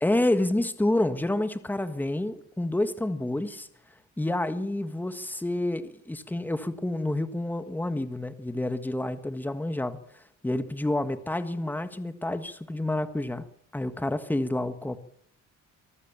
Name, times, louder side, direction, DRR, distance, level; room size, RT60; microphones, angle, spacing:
voice 1, 0.0-3.7 4.2-10.0 10.4-13.5 13.7-15.0, left 1 dB, 5° left, 1.5 m, -28 dB
24.5 x 14.5 x 7.2 m
cardioid pair, 140°, 31 cm